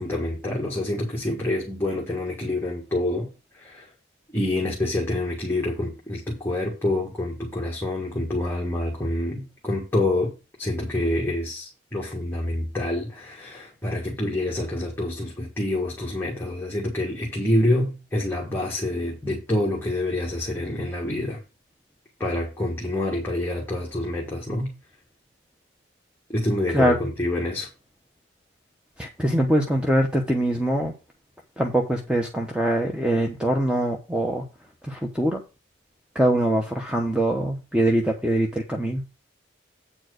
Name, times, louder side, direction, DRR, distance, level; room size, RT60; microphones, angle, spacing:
voice 1, 0.0-3.3 3.5-3.9 4.3-10.3 10.6-21.4 22.2-24.7 26.3-27.7, left 1 dB, 10° left, 1.6 m, -27 dB
voice 2, 29.0-30.9 31.6-34.4 34.8-35.4 36.1-39.0, right 1 dB, 5° right, 0.9 m, -23 dB
8.8 x 4.6 x 6.3 m
head